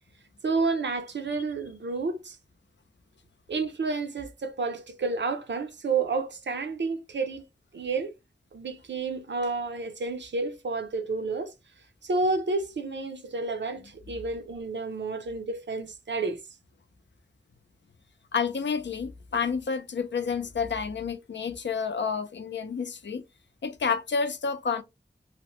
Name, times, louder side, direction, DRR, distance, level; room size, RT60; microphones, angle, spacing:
voice 1, 0.4-2.4 3.5-7.4 7.7-8.1 8.5-11.5 12.0-16.4, right 3 dB, 80° right, 0.6 m, -30 dB
voice 2, 18.3-23.2 23.6-24.8, left 5 dB, 80° left, 0.5 m, -29 dB
2.8 x 2.1 x 2.9 m
wide cardioid pair, 50°, 18 cm